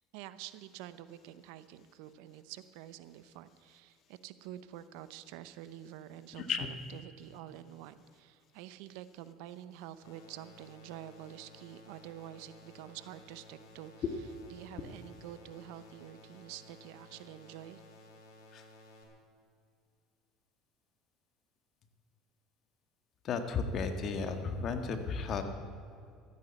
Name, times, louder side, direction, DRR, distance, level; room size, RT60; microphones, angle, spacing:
voice 1, 0.1-13.9 14.5-17.8, right 12 dB, 75° right, 14 dB, 0.7 m, -48 dB
voice 2, 6.3-6.7 18.5-18.7 23.2-25.4, left 5 dB, 50° left, 7 dB, 1.7 m, -34 dB
sound 1, 10.0-19.0, left 1 dB, 85° left, 3.0 m, -56 dB
13.5 x 9.4 x 8.2 m, 2.4 s
supercardioid pair, 90°, 0 cm